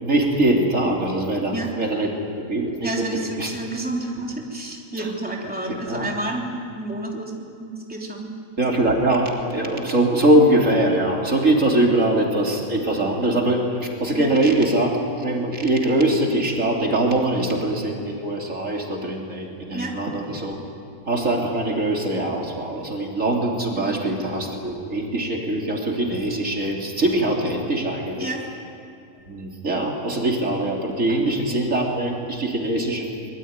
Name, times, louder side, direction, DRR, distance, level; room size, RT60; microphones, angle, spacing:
voice 1, 0.0-3.5 5.0-5.1 5.9-6.0 8.6-20.6 21.1-28.3 29.3-33.3, right 1 dB, 60° right, -1 dB, 3.6 m, -22 dB
voice 2, 2.8-7.3 7.6-8.3 14.1-14.3 19.7-19.9 23.7-24.0 28.2-28.4 31.5-31.6, right 2 dB, 5° right, -1 dB, 3.3 m, -30 dB
24.5 x 22.0 x 9.7 m, 2.6 s
omnidirectional pair, 1.5 m